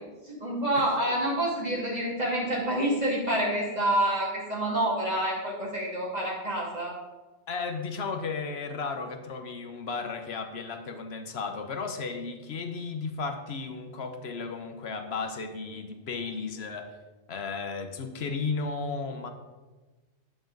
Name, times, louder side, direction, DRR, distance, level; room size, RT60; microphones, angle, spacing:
voice 1, 0.3-7.0, right 1 dB, 35° right, -4 dB, 2.4 m, -28 dB
voice 2, 7.5-16.9 17.3-19.3, left 4 dB, 60° left, 6 dB, 1.1 m, -34 dB
9.3 x 7.7 x 3.9 m, 1.2 s
omnidirectional pair, 1.2 m